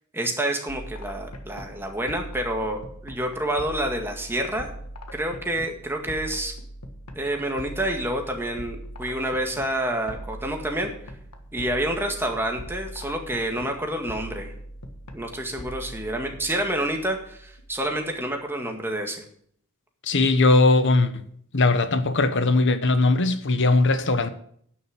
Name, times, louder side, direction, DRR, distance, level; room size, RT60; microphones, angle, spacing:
voice 1, 0.1-4.7 5.1-6.5 7.2-10.9 11.5-14.5 15.1-19.2, right 1 dB, 10° right, 1.8 m, -28 dB
sound 1, 0.7-18.3, equal, 90° left, 1.6 m, -41 dB
voice 2, 20.0-21.2 21.5-24.3, left 3 dB, 55° left, 1.1 m, -19 dB
11.0 x 6.5 x 8.0 m
head